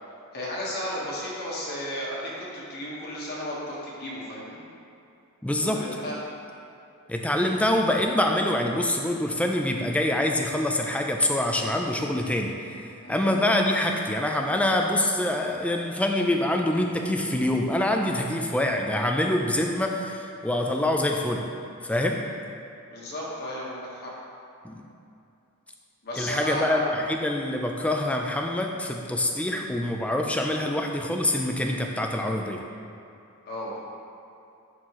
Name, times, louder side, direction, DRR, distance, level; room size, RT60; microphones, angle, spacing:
voice 1, 0.3-4.6 5.6-6.2 13.0-13.2 22.9-24.1 26.0-26.9 33.4-33.8, left 1 dB, 45° left, -6 dB, 1.4 m, -34 dB
voice 2, 5.4-5.8 7.1-12.5 13.1-21.5 21.8-22.2 24.6-24.8 26.2-32.6, left 1 dB, 5° left, 2 dB, 0.4 m, -25 dB
10.5 x 4.4 x 3.1 m, 2.7 s
head